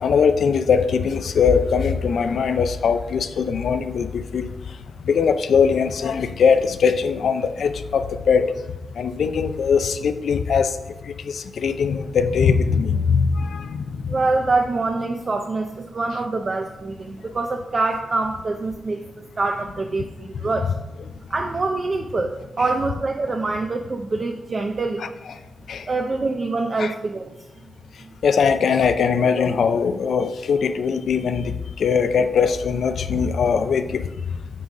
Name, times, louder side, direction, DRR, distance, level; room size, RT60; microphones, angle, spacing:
voice 1, 0.0-4.5 5.0-8.5 9.0-10.8 11.1-14.2 25.0-25.4 25.7-25.8 26.8-26.9 28.2-34.1, left 6 dB, 75° left, 10 dB, 0.5 m, -21 dB
voice 2, 14.1-20.8 21.3-25.1 25.9-27.3, right 3 dB, 35° right, 4 dB, 0.5 m, -25 dB
8.4 x 4.0 x 4.9 m, 1.0 s
wide cardioid pair, 125°, 0 cm